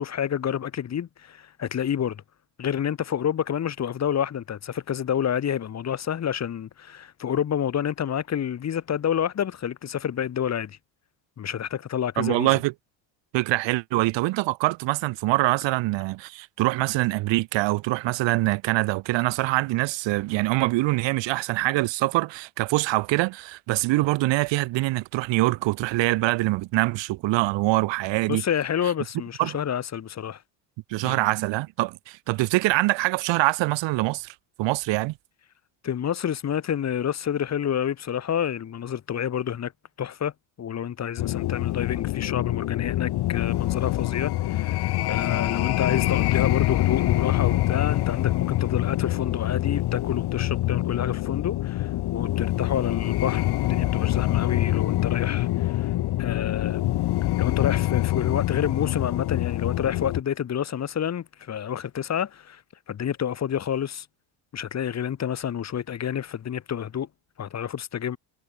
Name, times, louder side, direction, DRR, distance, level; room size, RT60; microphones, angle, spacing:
voice 1, 0.0-2.2 2.6-10.8 11.4-12.6 28.3-30.4 31.0-31.3 35.8-39.7 40.0-40.3 40.6-56.8 57.4-62.6 62.9-64.1 64.5-67.1 67.4-68.2, left 9 dB, 35° left, 4.5 m, -29 dB
voice 2, 12.2-12.7 13.3-28.4 29.4-29.6 30.9-35.1, right 20 dB, 65° right, 3.8 m, -24 dB
sound 1, 41.2-60.2, left 16 dB, 55° left, 3.2 m, -25 dB
cardioid pair, 150°, 47 cm